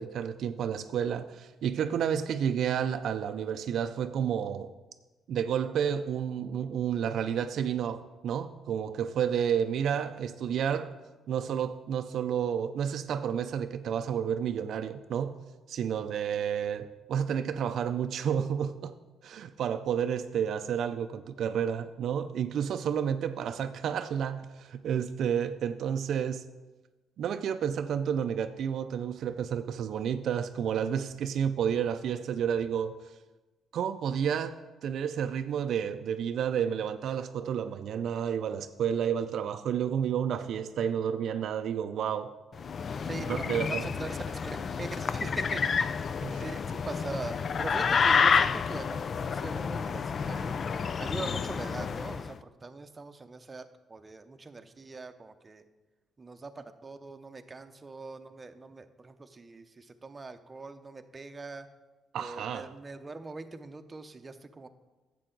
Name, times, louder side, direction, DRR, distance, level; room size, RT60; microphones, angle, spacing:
voice 1, 0.0-4.7 5.3-10.9 11.3-15.3 15.7-18.9 19.2-26.4 27.2-32.9 33.7-34.5 34.8-42.3 43.3-43.9 46.2-46.4 62.1-62.7, right 8 dB, 70° right, 0.4 m, -30 dB
sound 1, 42.6-52.3, left 6 dB, 50° left, 0.3 m, -29 dB
voice 2, 43.1-44.2 44.4-45.6 46.4-50.6 51.0-55.6 56.2-61.7 62.2-64.7, right 3 dB, 25° right, 0.7 m, -42 dB
11.0 x 7.7 x 3.9 m
cardioid pair, 90°, 0 cm